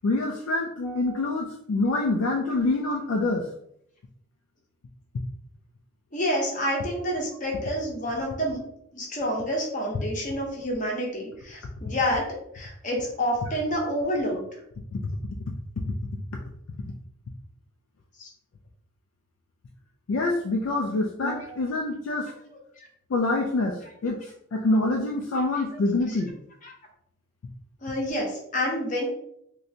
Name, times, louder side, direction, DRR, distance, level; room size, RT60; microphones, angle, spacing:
voice 1, 0.0-3.5 14.9-15.1 15.9-16.0 20.1-22.3 23.1-24.2 24.5-26.3, left 2 dB, 70° left, 2 dB, 0.3 m, -26 dB
voice 2, 6.1-8.6 8.9-14.4 18.2-18.3 26.6-26.7 27.8-29.1, equal, 35° left, 0 dB, 0.7 m, -28 dB
3.2 x 2.7 x 2.7 m, 0.74 s
head